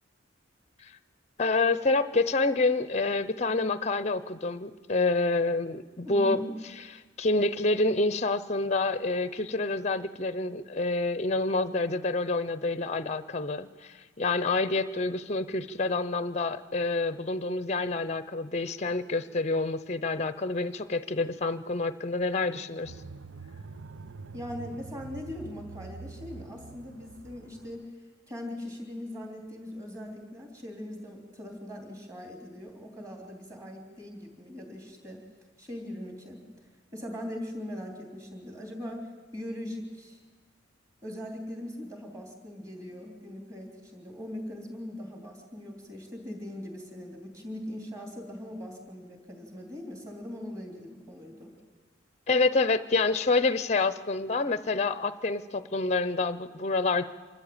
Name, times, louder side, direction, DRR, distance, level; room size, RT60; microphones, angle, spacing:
voice 1, 1.4-6.4 7.2-22.9 52.3-57.0, left 3 dB, 35° left, 14 dB, 0.6 m, -27 dB
voice 2, 6.0-6.6 24.3-35.2 35.6-36.4 36.9-40.2 41.0-51.5, left 1 dB, 15° right, 2 dB, 3.4 m, -40 dB
sound 1, 22.8-27.9, right 4 dB, 80° right, 0.7 m, -45 dB
25.5 x 13.5 x 8.8 m, 1.4 s
head